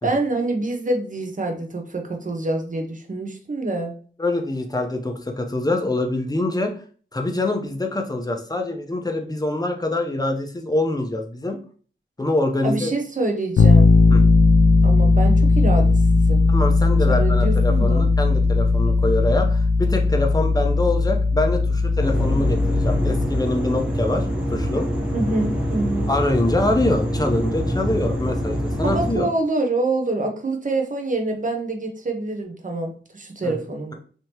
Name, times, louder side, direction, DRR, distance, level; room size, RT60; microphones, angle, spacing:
voice 1, 0.0-3.9 12.6-14.0 14.8-16.5 17.1-18.1 25.1-26.1 28.8-34.0, right 2 dB, 40° right, 2 dB, 0.7 m, -26 dB
voice 2, 4.2-6.7 7.1-11.6 12.2-12.9 14.1-14.2 16.5-24.9 26.1-29.3 33.4-33.6, left 2 dB, 20° left, 3 dB, 0.6 m, -24 dB
Bass guitar, 13.6-23.4, left 3 dB, 90° left, 0.4 m, -17 dB
sound 1, 22.0-29.1, equal, 5° right, 1.0 m, -25 dB
3.3 x 2.8 x 2.8 m, 0.42 s
wide cardioid pair, 80°, 20 cm